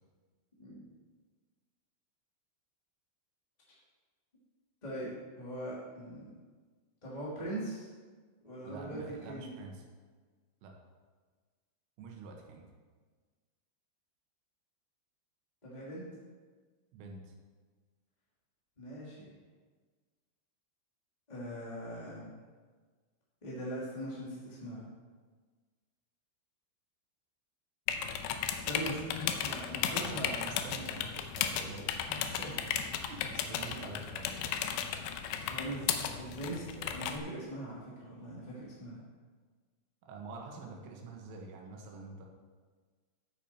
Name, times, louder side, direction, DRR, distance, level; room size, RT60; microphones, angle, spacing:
voice 1, 4.8-6.3 7.0-7.9 8.4-9.5 15.6-16.0 18.8-19.3 21.3-22.3 23.4-24.9 28.5-30.3 32.1-32.5 35.4-39.0, right 1 dB, 15° left, -7 dB, 1.4 m, -41 dB
voice 2, 8.6-9.8 10.6-10.7 12.0-12.7 16.9-17.3 30.0-32.3 32.5-34.9 40.0-42.3, right 4 dB, 85° right, 1 dB, 4.0 m, -47 dB
sound 1, 27.9-37.2, left 8 dB, 85° left, 2.5 m, -35 dB
12.0 x 8.8 x 4.5 m, 1.4 s
omnidirectional pair, 5.5 m